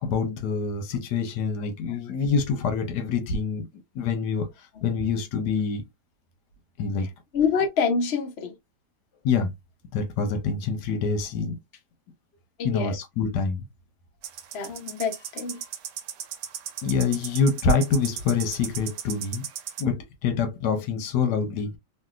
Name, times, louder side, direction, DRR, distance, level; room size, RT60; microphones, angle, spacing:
voice 1, 0.0-3.7 3.9-5.8 6.8-7.1 9.2-9.5 9.9-11.6 12.6-13.7 15.6-15.7 16.8-19.4 19.8-21.7, left 5 dB, 80° left, 1.3 m, -26 dB
voice 2, 7.3-8.5 12.6-12.9 14.5-15.6, left 5 dB, 50° left, 0.9 m, -26 dB
sound 1, 14.2-19.8, right 9 dB, 85° right, 1.3 m, -36 dB
3.2 x 2.7 x 2.3 m
omnidirectional pair, 1.8 m